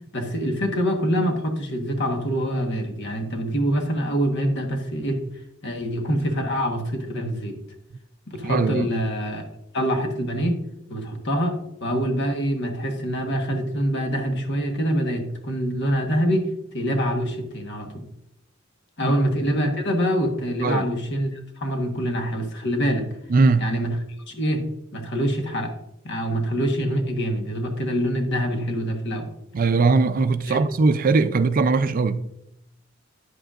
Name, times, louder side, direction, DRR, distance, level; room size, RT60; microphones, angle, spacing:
voice 1, 0.1-5.3 5.6-7.6 8.3-9.4 9.7-10.6 10.9-18.0 19.0-23.1 23.6-24.0 24.3-24.6 24.9-25.7 26.0-29.3 30.5-30.6, equal, 60° left, 1.3 m, -25 dB
voice 2, 8.4-8.9 19.0-19.1 20.6-20.8 23.3-23.7 29.5-32.2, right 4 dB, 45° right, 0.4 m, -20 dB
9.8 x 7.9 x 2.5 m
head